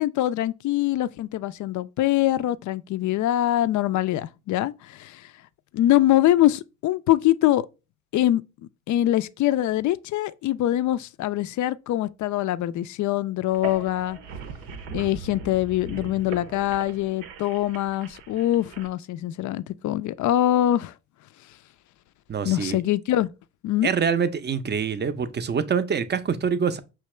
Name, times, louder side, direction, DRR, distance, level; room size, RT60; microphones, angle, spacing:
voice 1, 0.0-5.3 5.7-7.7 8.1-8.4 8.9-14.2 14.9-20.9 22.4-23.3 23.6-23.9, left 13 dB, 45° left, 0.4 m, -23 dB
sound 1, 13.5-18.9, right 5 dB, 75° right, 0.7 m, -40 dB
voice 2, 22.3-22.8 23.8-26.8, right 6 dB, 25° right, 0.5 m, -25 dB
5.6 x 2.9 x 3.1 m
hypercardioid pair, 45°, 43 cm